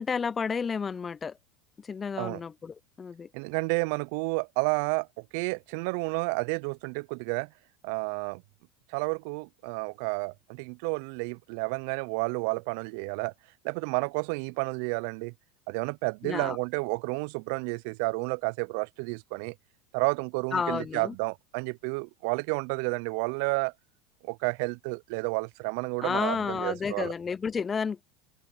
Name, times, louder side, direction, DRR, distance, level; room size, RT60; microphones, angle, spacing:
voice 1, 0.0-1.3 1.8-3.3 16.2-16.6 20.5-21.1 26.0-28.0, left 6 dB, 25° left, 0.5 m, -31 dB
voice 2, 3.3-7.5 7.8-8.4 8.9-13.3 13.6-15.3 15.7-19.5 19.9-23.7 24.2-27.1, right 31 dB, 65° right, 0.5 m, -31 dB
open air
hypercardioid pair, 85°, 0 cm